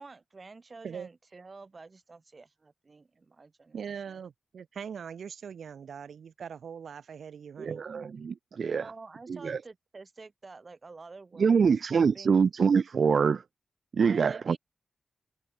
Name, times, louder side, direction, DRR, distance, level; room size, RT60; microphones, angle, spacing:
voice 1, 0.0-4.2 8.6-12.4 14.0-14.6, right 3 dB, 30° right, 5.6 m, -49 dB
voice 2, 3.7-7.8, right 7 dB, 75° right, 1.4 m, -41 dB
voice 3, 7.6-8.9 9.3-9.6 11.4-13.4 14.0-14.6, right 6 dB, 55° right, 0.6 m, -25 dB
wide cardioid pair, 180°, 0 cm